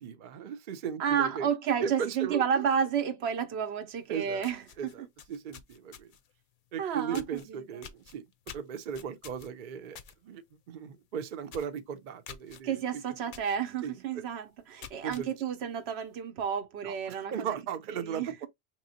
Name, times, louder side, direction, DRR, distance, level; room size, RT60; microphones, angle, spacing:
voice 1, 0.0-1.5 1.8-2.6 4.1-4.4 4.8-6.1 6.7-10.4 10.7-12.8 13.8-14.2 15.0-15.3 16.8-18.5, right 7 dB, 55° right, 0.7 m, -37 dB
voice 2, 1.0-5.1 6.8-7.9 12.6-17.5 18.0-18.3, right 8 dB, 80° right, 0.9 m, -31 dB
sound 1, 4.0-4.1 4.4-6.3 7.1-7.5 7.8-10.2 10.5-10.8 11.0-11.1 11.5-11.8 12.3-12.6 13.3-13.6 14.0-14.1 14.6-15.3, left 7 dB, 60° left, 0.6 m, -48 dB
4.6 x 3.0 x 2.7 m
omnidirectional pair, 1.1 m